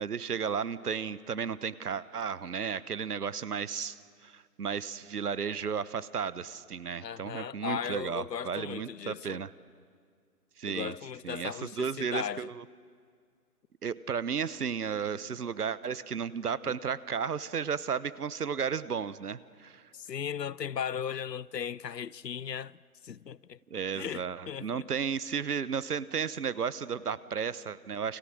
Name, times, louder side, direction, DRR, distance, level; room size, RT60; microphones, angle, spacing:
voice 1, 0.0-9.5 10.6-10.9 11.2-12.6 13.8-19.8 23.7-28.2, right 6 dB, 70° right, 1.1 m, -34 dB
voice 2, 7.0-9.4 10.7-12.5 16.7-16.8 19.9-22.8 23.0-23.6 23.9-24.9, left 8 dB, 85° left, 0.8 m, -37 dB
29.0 x 27.0 x 6.3 m
figure-of-eight pair, 155°, 48 cm